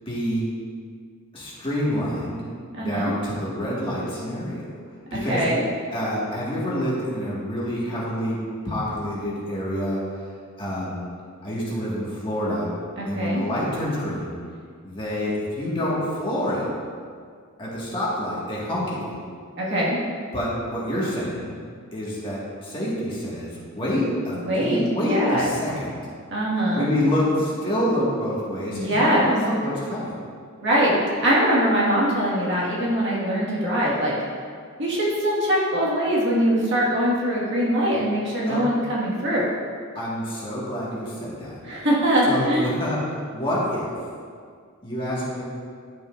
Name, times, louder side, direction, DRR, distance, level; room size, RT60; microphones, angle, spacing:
voice 1, 0.1-0.5 1.3-2.4 2.8-4.6 5.1-5.5 5.9-8.4 8.6-10.0 10.6-11.1 11.4-12.7 13.1-14.4 14.8-16.7 17.6-19.2 20.3-21.6 21.9-25.9 26.7-30.2 38.5-38.7 39.9-41.6 42.3-43.9 44.8-45.4, equal, 25° left, -7 dB, 1.8 m, -27 dB
voice 2, 2.7-3.1 5.3-5.6 13.0-13.4 19.6-20.0 24.5-25.5 26.3-26.9 28.7-29.3 30.6-34.1 34.8-39.5 41.6-42.7, equal, 55° right, -6 dB, 1.9 m, -22 dB
11.0 x 6.7 x 2.6 m, 2.1 s
head